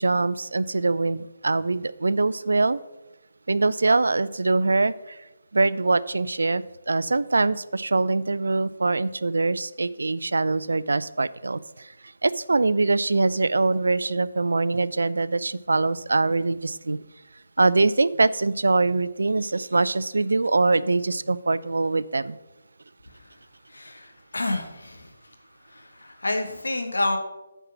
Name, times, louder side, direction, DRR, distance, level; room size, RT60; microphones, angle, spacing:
voice 1, 0.0-2.8 3.5-5.2 5.5-11.9 12.2-17.0 17.6-22.4, right 3 dB, 80° right, 17 dB, 0.4 m, -23 dB
voice 2, 23.7-25.1 25.7-27.2, left 2 dB, 90° left, 4 dB, 1.5 m, -29 dB
9.8 x 4.6 x 5.8 m, 1.0 s
figure-of-eight pair, 155°, 0 cm